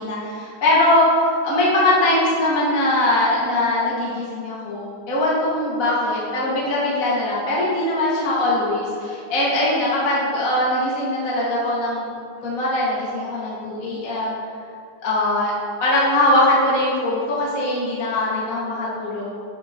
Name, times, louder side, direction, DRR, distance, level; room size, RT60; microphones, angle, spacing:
voice 1, 0.0-14.3 15.0-15.5 15.8-19.3, left 1 dB, 30° left, -7 dB, 1.8 m, -21 dB
13.0 x 11.0 x 3.2 m, 2.3 s
omnidirectional pair, 4.5 m